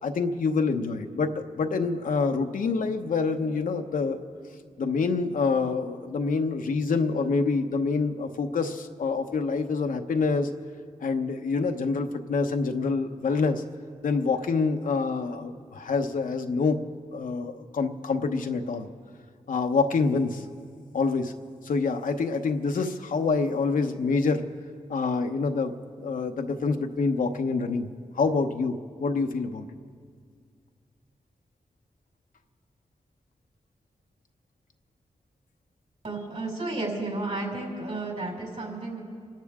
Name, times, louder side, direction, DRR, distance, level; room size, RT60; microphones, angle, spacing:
voice 1, 0.0-4.2 4.8-10.5 11.0-13.6 14.0-16.8 17.1-18.9 19.5-20.4 20.9-21.3 21.6-24.4 24.9-27.9 28.1-29.7, left 4 dB, 85° left, 5 dB, 0.9 m, -26 dB
voice 2, 36.0-39.0, right 2 dB, 60° right, -2 dB, 5.2 m, -32 dB
28.5 x 12.0 x 3.6 m, 2.1 s
cardioid pair, 50°, 14 cm